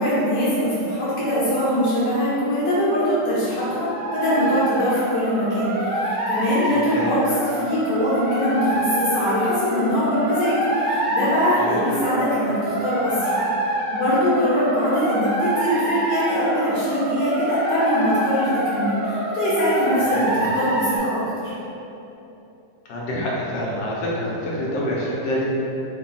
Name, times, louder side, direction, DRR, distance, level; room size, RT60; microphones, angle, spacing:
voice 1, 0.0-21.5, equal, 75° left, -10 dB, 1.3 m, -22 dB
sound 1, 3.6-21.0, right 1 dB, 65° right, 0.8 m, -26 dB
voice 2, 6.7-7.1 11.6-11.8 20.1-20.5 22.9-25.4, equal, 90° left, -5 dB, 1.3 m, -27 dB
3.2 x 2.2 x 3.9 m, 2.9 s
omnidirectional pair, 1.9 m